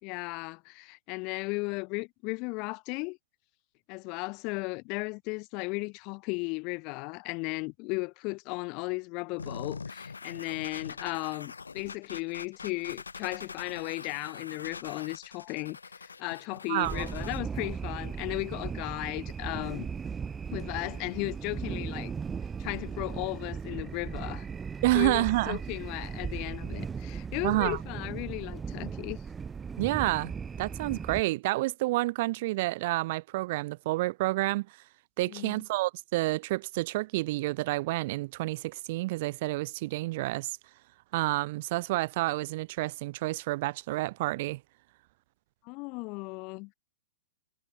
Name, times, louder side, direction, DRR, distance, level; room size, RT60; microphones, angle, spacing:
voice 1, 0.0-3.2 3.9-19.9 20.5-22.1 22.6-24.5 24.9-29.2 35.3-35.6 45.6-46.7, left 29 dB, 40° left, 2.1 m, -35 dB
sound 1, 9.4-17.4, left 5 dB, 80° left, 3.3 m, -43 dB
voice 2, 16.7-17.1 24.8-25.6 27.4-27.8 29.8-30.3 30.6-34.7 35.2-40.6 41.1-44.6, right 19 dB, 45° right, 1.4 m, -29 dB
sound 2, 16.8-31.2, right 6 dB, 15° right, 1.7 m, -37 dB
hypercardioid pair, 115°, 0 cm